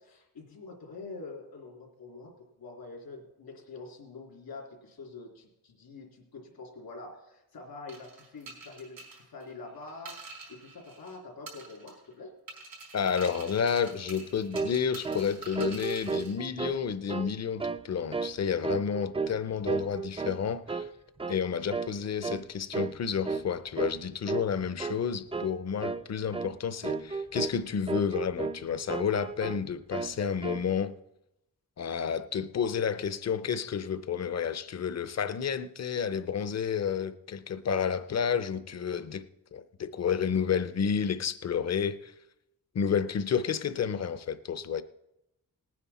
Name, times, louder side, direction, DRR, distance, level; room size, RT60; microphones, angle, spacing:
voice 1, 0.0-12.4, left 3 dB, 85° left, 3.1 m, -46 dB
sound 1, 7.9-11.2 11.5-12.1 12.5-16.3, right 4 dB, 85° right, 4.6 m, -47 dB
voice 2, 12.9-20.9 21.3-31.0 31.8-39.3 39.5-42.1 42.7-44.8, left 7 dB, 45° left, 0.6 m, -30 dB
sound 2, 14.5-14.8 15.0-15.3 15.6-16.8 17.1-17.3 17.6-17.9 18.1-18.4 18.6-19.4 19.7-20.4 20.7-20.9 21.2-21.4 21.7-21.9 22.2-22.4 22.7-23.0 23.3-23.5 23.8-24.0 24.3-24.5 24.8-25.0 25.3-25.6 25.8-26.0 26.3-26.5 26.8-27.6 27.9-28.6 28.9-29.6 29.9-30.7, right 4 dB, 15° right, 0.3 m, -33 dB
18.5 x 9.4 x 4.2 m
wide cardioid pair, 130°, 35 cm